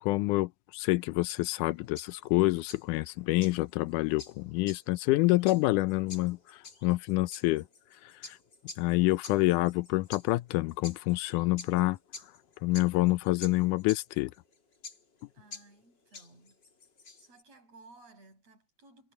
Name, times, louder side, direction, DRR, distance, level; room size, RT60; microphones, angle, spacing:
voice 1, 0.0-6.4 6.8-7.6 8.3-8.4 8.8-12.0 12.6-14.3, left 20 dB, 85° left, 2.1 m, -27 dB
sound 1, 1.0-17.4, left 4 dB, 35° left, 3.5 m, -49 dB
voice 2, 15.3-16.6 17.2-19.1, right 3 dB, 55° right, 9.4 m, -57 dB
omnidirectional pair, 3.6 m